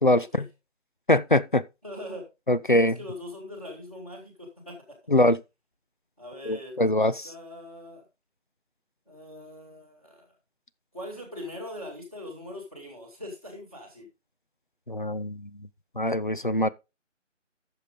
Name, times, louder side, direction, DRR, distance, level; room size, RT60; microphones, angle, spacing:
voice 1, 0.0-0.5 1.1-1.6 2.5-3.0 5.1-5.4 6.5-7.3 14.9-15.5 16.0-16.7, left 1 dB, 45° left, 0.4 m, -23 dB
voice 2, 1.8-2.3 2.8-4.8 6.2-8.0 9.1-10.3 10.9-14.1, left 1 dB, 10° left, 1.9 m, -41 dB
12.0 x 6.8 x 3.7 m
figure-of-eight pair, 175°, 38 cm